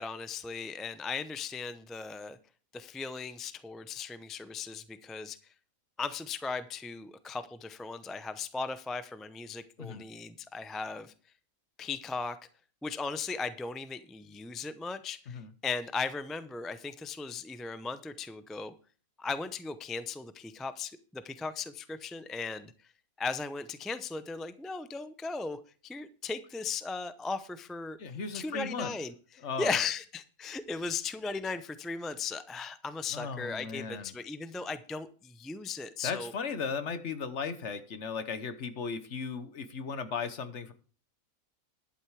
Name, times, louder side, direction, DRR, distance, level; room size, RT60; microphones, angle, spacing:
voice 1, 0.0-2.4 2.7-5.4 6.0-11.1 11.8-12.4 12.8-18.7 19.2-22.7 23.2-28.0 28.3-36.3, left 4 dB, ahead, 12 dB, 0.3 m, -37 dB
voice 2, 28.0-29.0 29.4-29.8 33.1-34.1 36.0-40.7, left 5 dB, 55° left, 11 dB, 1.2 m, -36 dB
11.5 x 9.0 x 4.8 m, 0.39 s
omnidirectional pair, 1.5 m